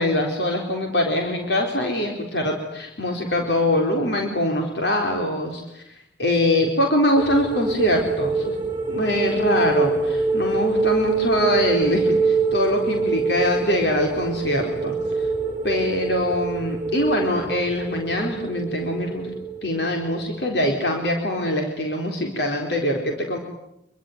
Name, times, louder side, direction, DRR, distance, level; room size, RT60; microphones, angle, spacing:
voice 1, 0.0-5.8 6.2-8.5 8.9-15.3 15.6-19.3 19.6-23.4, left 1 dB, 75° left, 2 dB, 4.2 m, -23 dB
sound 1, 7.2-20.6 20.9-21.1, right 4 dB, 10° right, 5.3 m, -25 dB
26.5 x 23.5 x 9.5 m, 0.79 s
head